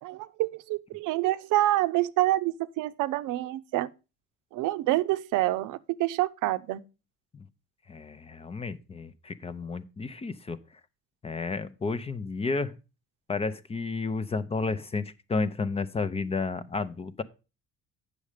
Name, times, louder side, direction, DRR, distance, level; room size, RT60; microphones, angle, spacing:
voice 1, 0.0-3.9 4.5-6.8, right 16 dB, 85° right, 0.6 m, -27 dB
voice 2, 7.9-10.6 11.2-12.8 13.3-17.2, left 4 dB, 20° left, 0.5 m, -32 dB
8.6 x 6.4 x 4.9 m
cardioid pair, 135°, 31 cm